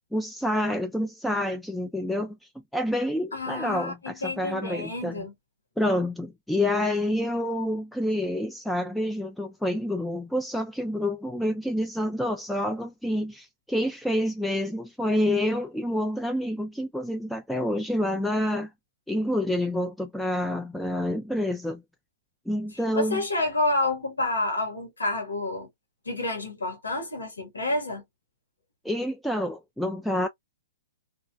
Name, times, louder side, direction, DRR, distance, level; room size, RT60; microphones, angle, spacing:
voice 1, 0.1-2.4 2.7-5.3 5.8-18.7 19.1-21.8 22.5-23.2 28.8-30.3, left 1 dB, ahead, 0.3 m, -28 dB
voice 2, 3.3-5.3 22.9-25.7 26.0-28.0, left 2 dB, 85° left, 1.2 m, -29 dB
3.1 x 2.3 x 2.2 m
hypercardioid pair, 120°, 0 cm